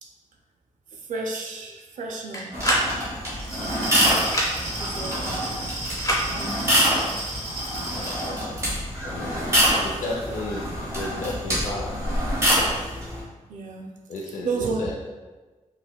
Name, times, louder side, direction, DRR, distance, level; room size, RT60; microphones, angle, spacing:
voice 1, 0.9-2.6 4.6-5.6 6.3-6.9 8.0-8.1 13.5-13.9 14.4-14.9, right 3 dB, 85° right, 1 dB, 0.4 m, -32 dB
sound 1, 2.3-2.9 4.2-4.5 6.0-6.2, equal, 25° left, 0.7 m, -23 dB
sound 2, 2.5-13.2, equal, 25° right, 1.3 m, -26 dB
Glass, 3.3-8.4, right 1 dB, 45° right, 0.9 m, -34 dB
voice 2, 4.9-5.3 7.8-12.0 14.1-14.9, left 2 dB, 85° left, -3 dB, 0.4 m, -34 dB
5.5 x 2.1 x 2.2 m, 1.3 s
wide cardioid pair, 160°, 13 cm